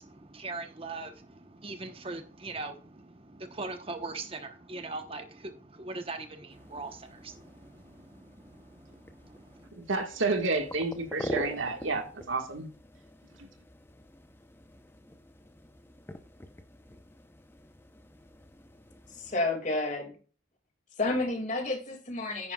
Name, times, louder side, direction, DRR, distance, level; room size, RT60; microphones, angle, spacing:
voice 1, 0.0-9.7, right 3 dB, 30° right, 1.0 m, -41 dB
sound 1, 6.5-19.4, left 1 dB, 10° left, 0.7 m, -45 dB
voice 2, 9.7-12.7 13.4-13.5, right 3 dB, 85° right, 1.7 m, -30 dB
voice 3, 19.1-20.2 21.0-22.5, left 2 dB, 40° left, 2.2 m, -30 dB
9.8 x 9.5 x 2.4 m
head